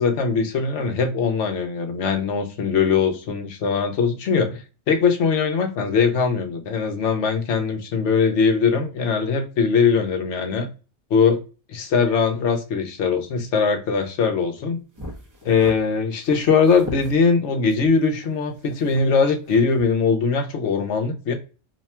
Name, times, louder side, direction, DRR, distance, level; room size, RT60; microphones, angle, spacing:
voice 1, 0.0-10.7 11.1-11.4 11.7-14.8 15.4-21.3, left 5 dB, 65° left, 5 dB, 1.0 m, -21 dB
sound 1, 15.0-15.8 16.2-17.1 17.7-19.2 19.5-19.8, left 1 dB, 20° right, 0.6 m, -38 dB
2.8 x 2.2 x 4.1 m, 0.33 s
omnidirectional pair, 1.3 m